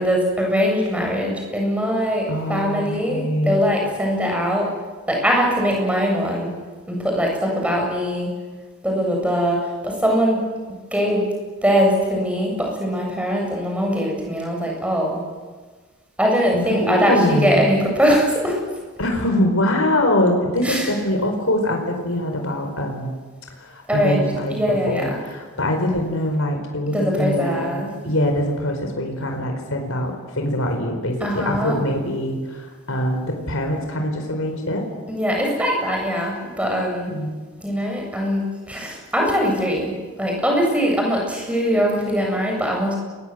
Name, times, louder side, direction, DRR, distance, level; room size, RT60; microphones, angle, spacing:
voice 1, 0.0-4.7 5.1-6.5 6.9-8.3 8.8-9.6 9.8-10.4 10.9-11.2 11.6-15.2 16.2-18.6 20.6-20.9 23.9-25.0 26.9-27.9 31.2-31.8 35.1-37.2 37.6-39.9 40.2-42.9, equal, 5° right, 0 dB, 7.9 m, -21 dB
voice 2, 2.0-3.6 16.5-17.6 19.0-23.1 23.6-34.9 37.1-37.3, left 1 dB, 65° left, 3 dB, 4.9 m, -23 dB
30.0 x 22.5 x 8.1 m, 1.4 s
head